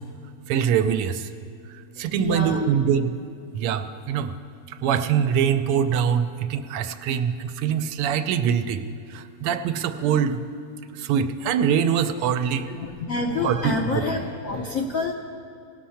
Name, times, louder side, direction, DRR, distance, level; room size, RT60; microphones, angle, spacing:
voice 1, 0.5-1.1 2.0-3.1 3.5-3.8 4.1-4.3 4.8-7.3 7.6-8.8 9.4-10.4 11.1-12.6 13.4-14.0, right 8 dB, 90° right, 9 dB, 1.5 m, -23 dB
voice 2, 2.2-2.6 12.5-15.1, left 3 dB, 80° left, 2 dB, 0.7 m, -27 dB
18.0 x 6.3 x 5.7 m, 2.5 s
omnidirectional pair, 2.4 m